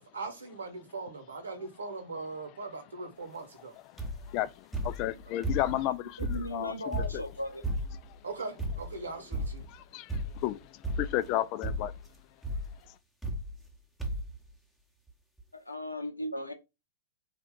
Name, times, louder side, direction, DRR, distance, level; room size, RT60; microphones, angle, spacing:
voice 1, 0.0-3.8 8.2-9.7, right 3 dB, 75° right, 1.1 m, -40 dB
voice 2, 3.9-7.2 8.1-8.2 9.7-11.9, left 14 dB, 40° left, 0.3 m, -33 dB
sound 1, 4.0-4.4 4.7-5.9 6.2-8.1 8.6-9.0 9.3-9.7 10.1-10.5 10.8-11.3 11.6-12.1 12.4-12.7 13.2-13.7 14.0-14.4 15.1-15.2 15.4-15.5, equal, ahead, 0.8 m, -34 dB
voice 3, 6.3-7.6 15.5-16.5, left 1 dB, 90° left, 0.6 m, -37 dB
3.4 x 2.4 x 3.7 m
figure-of-eight pair, 100°, 0 cm